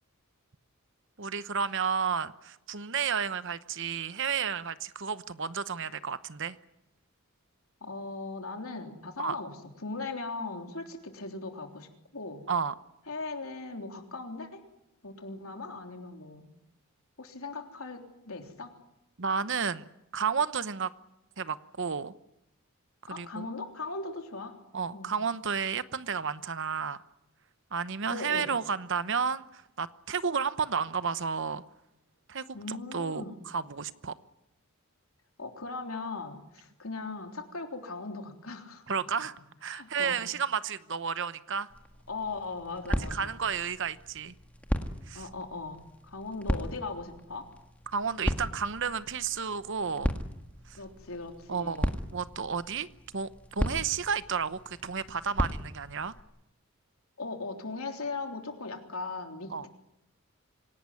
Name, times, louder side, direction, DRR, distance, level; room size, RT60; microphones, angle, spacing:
voice 1, 1.2-6.6 9.2-9.4 12.5-12.7 19.2-19.8 20.1-20.9 21.4-22.1 23.0-23.5 24.7-27.0 27.7-31.6 32.3-34.1 38.9-39.3 39.6-41.7 43.1-44.3 45.1-45.2 47.9-50.1 50.7-50.8 51.5-52.9 53.1-56.1 59.5-59.7, right 6 dB, 55° right, 14 dB, 1.0 m, -32 dB
voice 2, 7.8-12.5 13.1-14.6 15.0-16.5 17.2-18.7 23.1-24.6 24.9-25.1 28.1-28.5 32.5-33.4 35.4-39.1 39.7-40.2 42.1-43.4 45.1-47.5 50.8-51.9 57.2-59.7, left 3 dB, 70° left, 4 dB, 3.6 m, -39 dB
sound 1, 41.7-56.2, equal, 5° left, 1.8 m, -36 dB
26.0 x 18.0 x 9.8 m, 0.85 s
head